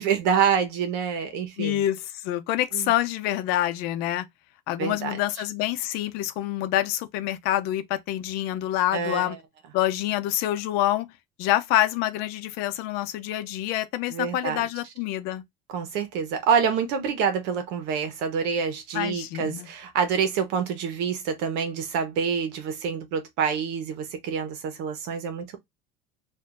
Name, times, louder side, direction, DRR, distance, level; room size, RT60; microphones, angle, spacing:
voice 1, 0.0-1.8 2.7-2.9 4.8-5.2 8.9-9.4 14.1-14.6 15.7-25.6, right 6 dB, 70° right, 1.2 m, -27 dB
voice 2, 1.6-4.3 4.7-9.4 9.7-11.1 11.4-15.4 18.9-19.7, left 13 dB, 65° left, 0.7 m, -26 dB
4.5 x 2.7 x 2.6 m
cardioid pair, 155°, 18 cm